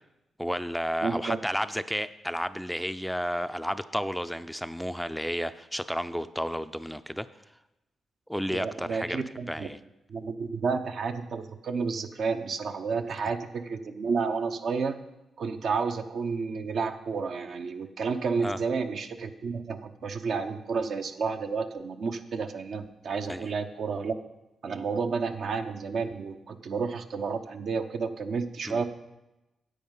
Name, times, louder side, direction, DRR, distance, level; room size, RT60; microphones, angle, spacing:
voice 1, 0.4-7.3 8.3-9.8 18.4-18.6 23.3-23.5 28.7-28.8, equal, ahead, 12 dB, 0.4 m, -32 dB
voice 2, 1.0-1.4 8.5-9.7 10.1-15.0 15.4-24.1 24.6-28.9, right 5 dB, 65° right, 7 dB, 0.8 m, -31 dB
9.9 x 8.0 x 5.5 m, 0.97 s
cardioid pair, 75°, 0 cm